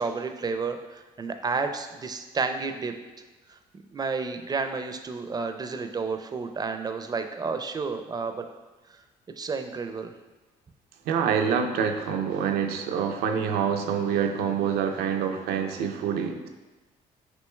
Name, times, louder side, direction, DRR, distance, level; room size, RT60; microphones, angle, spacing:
voice 1, 0.0-2.9 3.9-8.5 9.4-10.1, right 4 dB, 25° right, 7 dB, 0.4 m, -31 dB
voice 2, 11.1-16.5, right 7 dB, 85° right, 5 dB, 0.4 m, -26 dB
6.1 x 2.9 x 2.2 m, 1.2 s
supercardioid pair, 75°, 16 cm